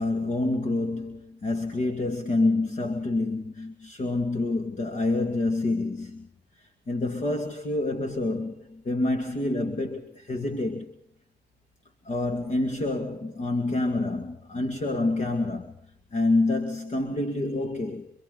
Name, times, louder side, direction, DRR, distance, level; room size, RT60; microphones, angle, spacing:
voice 1, 0.0-6.3 6.6-10.9 12.0-15.8 16.1-18.1, left 2 dB, 40° left, 2.2 m, -27 dB
28.5 x 25.0 x 4.0 m
cardioid pair, 90°, 20 cm